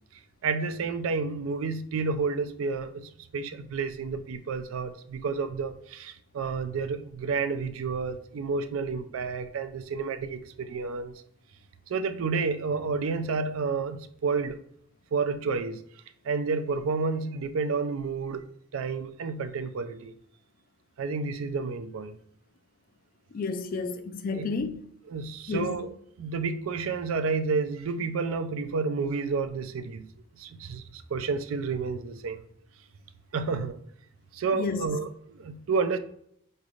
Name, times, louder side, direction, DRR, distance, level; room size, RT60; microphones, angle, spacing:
voice 1, 0.4-11.1 11.9-14.6 15.1-15.8 16.2-18.5 18.7-20.1 21.0-22.2 24.3-24.5 25.1-25.9 26.2-30.1 30.4-32.4 33.3-33.8 34.3-36.0, right 4 dB, 75° right, 0.4 m, -30 dB
voice 2, 23.3-24.9 25.5-25.8 34.6-34.9, left 4 dB, 40° left, 0.3 m, -31 dB
5.0 x 3.2 x 2.4 m
head